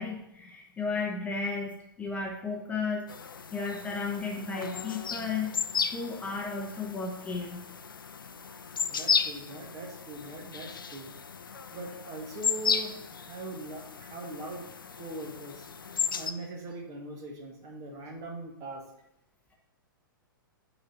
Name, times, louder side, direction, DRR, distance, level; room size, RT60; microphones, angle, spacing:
voice 1, 0.0-3.1 3.5-5.6 5.9-7.6, left 4 dB, 10° left, 0 dB, 1.0 m, -34 dB
sound 1, 3.1-16.3, left 6 dB, 70° left, 0.5 m, -34 dB
voice 2, 8.9-11.1 11.7-14.6 15.0-15.7 16.2-18.8, right 2 dB, 30° right, 1 dB, 1.7 m, -41 dB
8.7 x 4.4 x 5.2 m, 0.83 s
figure-of-eight pair, 105°, 12 cm